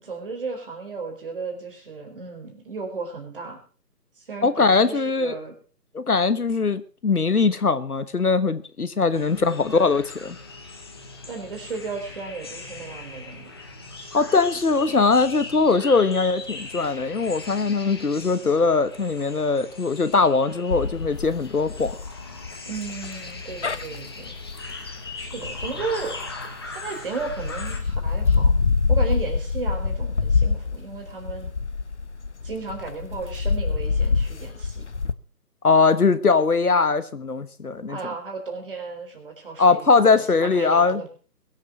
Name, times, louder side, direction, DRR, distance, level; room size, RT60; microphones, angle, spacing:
voice 1, 0.0-3.6 4.2-5.6 9.4-9.6 11.3-13.5 22.7-24.4 25.1-26.2 26.7-28.5 28.9-31.5 32.4-34.8 37.9-41.1, right 4 dB, 35° right, 4.4 m, -34 dB
voice 2, 4.4-5.3 5.9-10.4 14.1-22.0 35.6-38.0 39.6-41.0, left 4 dB, 65° left, 1.3 m, -21 dB
sound 1, 9.1-27.8, left 3 dB, 15° left, 1.2 m, -39 dB
sound 2, 20.7-26.7 27.2-35.1, left 4 dB, 45° left, 0.9 m, -25 dB
21.5 x 7.4 x 6.0 m
figure-of-eight pair, 160°, 47 cm